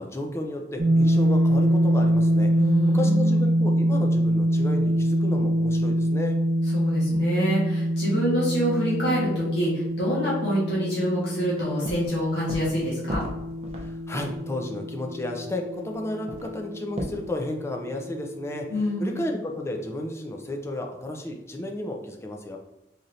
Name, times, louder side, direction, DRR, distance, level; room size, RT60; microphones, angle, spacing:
voice 1, 0.0-2.5 2.9-6.4 13.8-18.7 19.0-22.6, left 1 dB, 15° left, 2 dB, 0.4 m, -32 dB
sound 1, 0.8-16.8, equal, 85° right, 0.9 m, -24 dB
voice 2, 2.6-3.4 6.7-13.2 18.7-19.2, equal, 70° left, -7 dB, 1.4 m, -26 dB
sound 2, 11.3-11.4 11.7-12.2 12.5-12.8 13.1-14.5 15.5-15.6 15.7-15.8 16.3-17.2, equal, 35° right, 0.6 m, -35 dB
4.0 x 3.1 x 2.6 m, 0.91 s
head